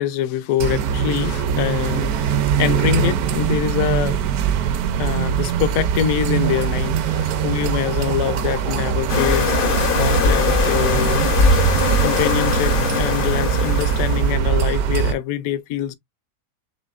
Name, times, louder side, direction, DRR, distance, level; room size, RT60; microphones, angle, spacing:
voice 1, 0.0-4.2 5.0-11.2 12.0-15.9, left 12 dB, 70° left, 0.9 m, -25 dB
sound 1, 0.6-15.1, right 8 dB, 75° right, 1.1 m, -22 dB
sound 2, 6.4-11.7 12.0-12.7 13.1-13.9, right 7 dB, 55° right, 0.6 m, -34 dB
sound 3, 9.1-14.4, left 5 dB, 50° left, 0.6 m, -21 dB
6.3 x 2.6 x 2.4 m
omnidirectional pair, 1.7 m